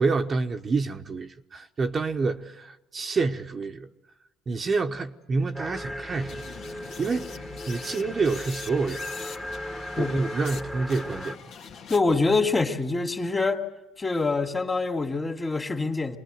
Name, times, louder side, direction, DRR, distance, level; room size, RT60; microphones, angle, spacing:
voice 1, 0.0-3.9 4.5-9.0 10.0-11.4, right 4 dB, 35° right, 1.1 m, -28 dB
sound 1, 5.5-11.4, left 1 dB, 5° left, 1.4 m, -37 dB
sound 2, 6.1-10.6 10.9-12.3, left 6 dB, 70° left, 2.2 m, -43 dB
voice 2, 11.9-13.7 14.0-16.2, left 3 dB, 25° left, 2.5 m, -25 dB
25.5 x 20.0 x 7.9 m
supercardioid pair, 80°, 0 cm